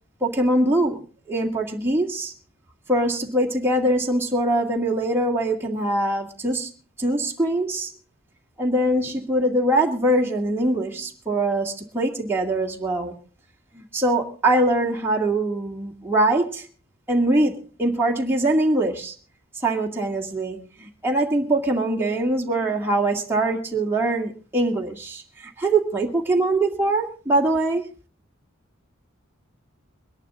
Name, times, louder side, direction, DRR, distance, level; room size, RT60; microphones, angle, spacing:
voice 1, 0.2-2.3 2.9-6.7 7.0-7.9 8.6-13.2 13.7-16.7 17.1-19.1 19.6-27.8, right 1 dB, 10° right, 2.1 m, -23 dB
23.0 x 11.0 x 3.7 m
head